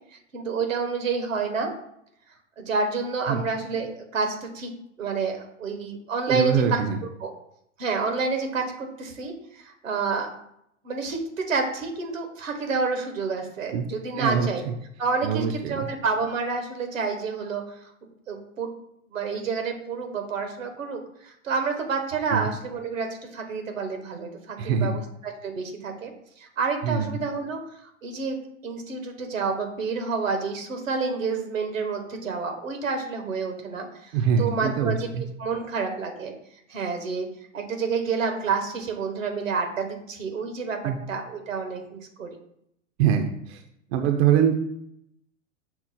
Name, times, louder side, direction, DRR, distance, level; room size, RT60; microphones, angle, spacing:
voice 1, 0.3-1.7 2.6-4.7 5.0-6.8 7.2-7.3 7.8-10.3 10.8-14.6 15.0-17.9 18.3-18.7 19.1-27.6 28.0-28.4 28.6-34.1 34.4-36.3 36.7-37.3 37.5-40.8 41.1-42.3, right 4 dB, 85° right, 4 dB, 1.1 m, -29 dB
voice 2, 6.3-7.0 13.7-13.9 14.2-14.7 15.2-15.9 22.3-22.5 24.6-25.0 26.8-27.2 34.1-35.3 40.8-41.0 43.0-43.6 43.9-44.5, right 7 dB, 55° right, 5 dB, 0.6 m, -24 dB
6.0 x 2.0 x 4.0 m, 0.75 s
hypercardioid pair, 105°, 38 cm